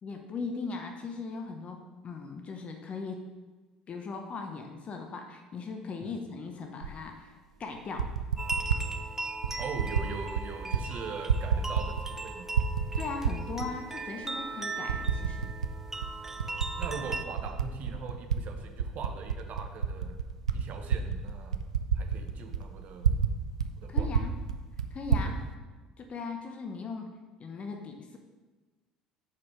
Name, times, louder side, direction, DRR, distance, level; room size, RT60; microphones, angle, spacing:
voice 1, 0.0-3.3 3.9-8.1 13.0-15.6 23.9-24.4 24.9-25.4 26.0-28.2, left 4 dB, 40° left, 4 dB, 0.8 m, -39 dB
Typing, 6.8-6.9 7.8-8.8 9.4-10.1 10.3-10.8 11.1-12.2 12.5-13.7 14.2-14.3 14.9-15.7 16.0-18.4 18.7-23.3 23.6-23.7 23.9-25.3, right 7 dB, 85° right, 0.3 m, -29 dB
sound 1, 8.4-17.2, right 3 dB, 15° right, 0.6 m, -38 dB
voice 2, 9.6-12.5 16.8-20.2 20.5-21.7 21.9-23.1 23.8-24.1 25.2-25.5, right 5 dB, 50° right, 5 dB, 0.9 m, -41 dB
5.8 x 4.9 x 4.7 m, 1.3 s
figure-of-eight pair, 60°, 3 cm